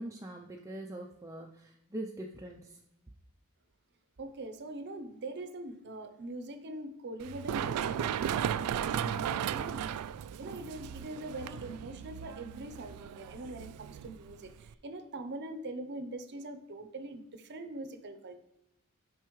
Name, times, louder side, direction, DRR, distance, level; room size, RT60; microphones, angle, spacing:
voice 1, 0.0-2.8, right 1 dB, 15° right, 0 dB, 0.4 m, -42 dB
voice 2, 4.2-10.0 10.4-18.4, right 2 dB, 50° right, 9 dB, 0.7 m, -42 dB
Run, 7.2-14.7, right 9 dB, 85° right, 0.3 m, -36 dB
9.1 x 5.6 x 3.1 m, 0.84 s
head